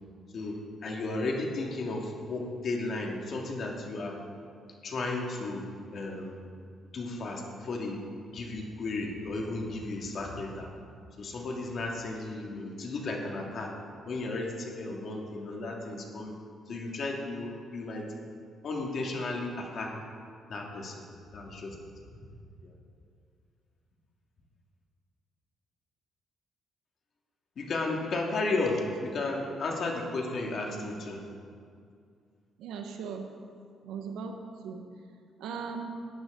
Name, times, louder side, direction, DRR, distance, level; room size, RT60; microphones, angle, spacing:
voice 1, 0.3-4.2 4.8-5.7 5.9-6.4 6.9-8.0 8.3-10.7 11.2-13.7 14.1-16.3 16.7-18.1 18.6-19.9 20.5-21.0 21.3-21.8 22.6-22.7 27.6-31.2, left 2 dB, 55° left, 0 dB, 2.1 m, -34 dB
voice 2, 32.6-33.3 33.8-34.8 35.4-35.9, right 5 dB, 85° right, 4 dB, 1.3 m, -38 dB
15.0 x 9.5 x 3.8 m, 2.3 s
cardioid pair, 90°, 0 cm